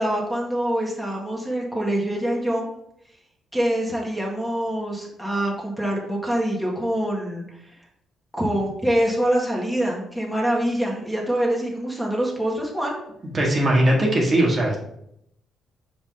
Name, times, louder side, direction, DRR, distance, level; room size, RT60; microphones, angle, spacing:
voice 1, 0.0-2.7 3.5-7.8 8.3-13.0, right 1 dB, ahead, -2 dB, 1.8 m, -25 dB
voice 2, 13.3-14.8, right 1 dB, 35° right, -2 dB, 1.6 m, -19 dB
6.0 x 5.1 x 3.9 m, 0.75 s
cardioid pair, 90°, 0 cm